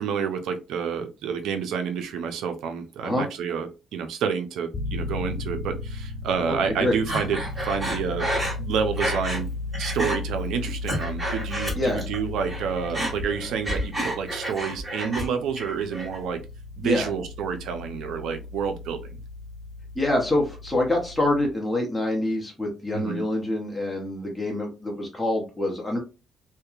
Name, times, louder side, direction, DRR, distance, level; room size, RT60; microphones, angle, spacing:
voice 1, 0.0-8.3 8.6-9.5 9.8-16.4 16.8-19.2 22.9-23.2, right 6 dB, 80° right, 7 dB, 0.5 m, -29 dB
sound 1, 4.7-21.5, left 3 dB, 45° left, 0.4 m, -36 dB
voice 2, 6.5-7.0 11.7-12.0 16.8-17.1 19.9-26.0, left 1 dB, 10° left, -1 dB, 0.8 m, -26 dB
Breathing, 7.1-9.5 9.7-10.2 10.6-12.2 12.4-15.3 15.6-16.2, right 1 dB, 15° right, 1.4 m, -30 dB
2.7 x 2.2 x 2.3 m, 0.29 s
cardioid pair, 90°, 0 cm